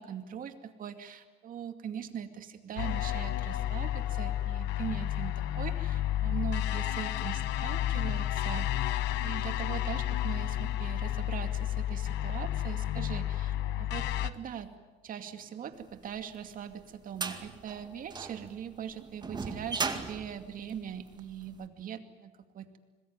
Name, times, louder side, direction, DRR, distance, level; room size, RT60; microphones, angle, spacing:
voice 1, 0.0-8.7 9.2-14.7 15.0-22.8, right 8 dB, 55° right, 7 dB, 2.4 m, -41 dB
sound 1, 2.8-14.3, left 12 dB, 90° left, 1.1 m, -31 dB
sound 2, 16.1-21.5, right 4 dB, 25° right, 2.2 m, -37 dB
26.0 x 20.5 x 9.5 m, 1.3 s
cardioid pair, 110°, 17 cm